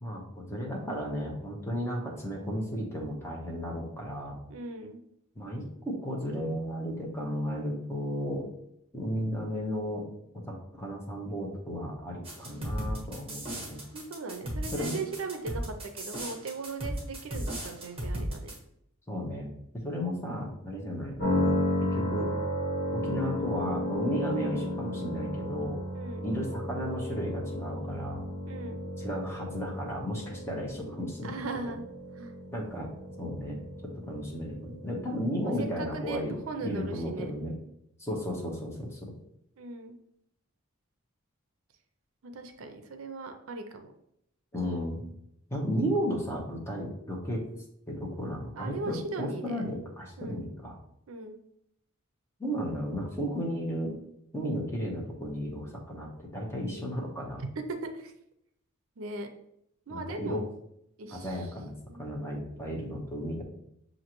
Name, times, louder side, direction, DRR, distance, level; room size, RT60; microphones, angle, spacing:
voice 1, 0.0-4.4 5.4-8.5 8.9-10.1 10.3-13.8 14.6-15.0 19.1-22.3 22.9-25.8 26.2-28.3 29.0-31.7 32.5-32.9 33.2-37.6 38.0-39.1 44.5-45.0 45.5-47.4 47.9-50.8 52.4-54.0 54.3-57.4 59.9-60.4 61.1-61.7 62.0-63.4, equal, 10° left, -2 dB, 0.8 m, -34 dB
voice 2, 4.5-5.0 13.9-18.5 25.9-26.3 28.5-28.8 31.2-31.8 32.1-32.3 35.4-37.3 39.6-40.0 42.2-43.9 48.5-49.8 50.2-50.4 51.1-51.4 57.4-57.5 57.8-58.1 59.0-59.3 59.9-60.5 61.0-61.5 61.9-62.0, right 3 dB, 70° right, 6 dB, 0.5 m, -39 dB
sound 1, 12.2-18.6, right 1 dB, 25° right, 1.1 m, -36 dB
sound 2, 21.2-35.0, left 1 dB, 50° left, 1.4 m, -34 dB
6.3 x 2.5 x 2.9 m, 0.75 s
head